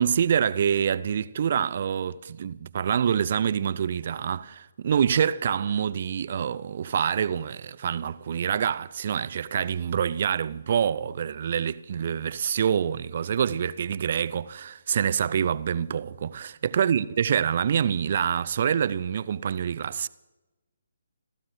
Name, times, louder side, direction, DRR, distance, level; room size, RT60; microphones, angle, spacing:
voice 1, 0.0-20.1, right 8 dB, 45° right, 0.6 m, -26 dB
30.0 x 14.0 x 3.3 m
figure-of-eight pair, 140°, 0 cm